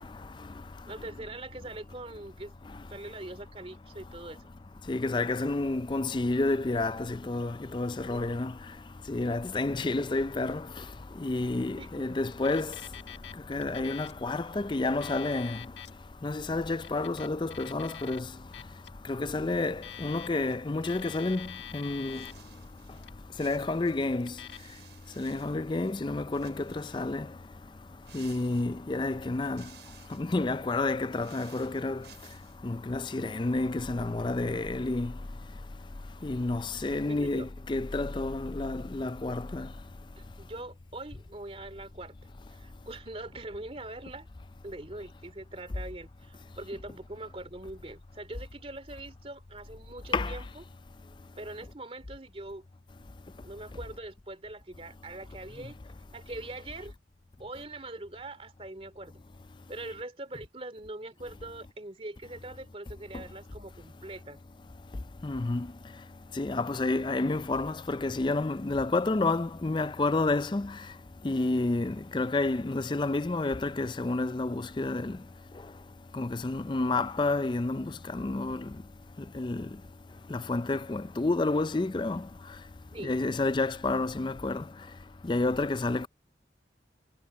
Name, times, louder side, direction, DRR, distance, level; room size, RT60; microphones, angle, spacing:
voice 1, 0.9-2.5 2.9-4.5 8.1-8.4 11.8-12.0 37.1-37.5 40.2-42.1 42.5-44.3 44.6-50.6 51.4-52.7 53.4-55.8 56.1-56.9 57.4-59.2 59.7-64.4 82.9-83.2, right 2 dB, 30° right, 2.6 m, -42 dB
voice 2, 4.9-8.5 9.1-10.6 11.2-12.7 13.5-15.6 16.2-18.2 19.1-21.5 21.7-22.2 23.4-24.3 25.2-27.3 28.1-29.6 30.2-32.0 32.6-35.1 36.2-39.7 50.1-50.3 65.2-65.7 66.4-70.7 71.2-75.1 76.1-78.6 79.4-79.7 80.3-82.2 83.0-84.6 85.3-86.1, left 2 dB, 25° left, 0.4 m, -29 dB
Alarm, 12.3-13.3 13.6-14.2 14.8-15.9 16.7-18.2 18.5-18.9 19.6-20.5 20.8-22.4 22.9-23.4 24.2-24.6, left 10 dB, 80° left, 1.5 m, -45 dB
sound 1, 22.1-23.1 23.4-26.1 26.3-27.2 28.0-29.0 29.4-30.3 31.0-32.6, right 10 dB, 75° right, 5.8 m, -57 dB
head